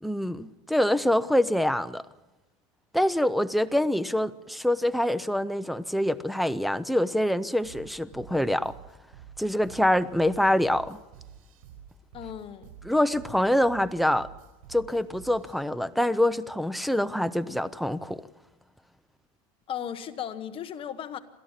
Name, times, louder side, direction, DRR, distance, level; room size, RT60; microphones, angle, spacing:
voice 1, 0.0-2.0 2.9-8.7 9.4-11.0 12.8-14.3 14.7-18.2, left 1 dB, ahead, 12 dB, 0.6 m, -25 dB
sound 1, 7.6-15.6, right 9 dB, 85° right, 5.0 m, -49 dB
voice 2, 12.1-12.7 19.7-21.2, left 9 dB, 30° left, 10 dB, 1.2 m, -36 dB
28.5 x 13.0 x 7.3 m, 1.1 s
supercardioid pair, 135°, 18 cm